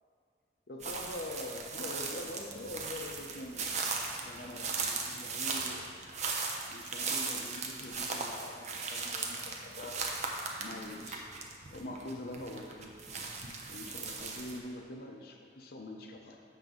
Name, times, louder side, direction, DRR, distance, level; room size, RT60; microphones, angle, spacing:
voice 1, 0.7-3.7 4.2-5.9 6.7-10.0 10.6-11.3 11.7-12.9 13.7-16.4, left 1 dB, 60° left, 2 dB, 0.7 m, -44 dB
sound 1, 0.8-14.6, right 4 dB, 40° right, 0.7 m, -38 dB
7.5 x 6.1 x 3.7 m, 2.2 s
head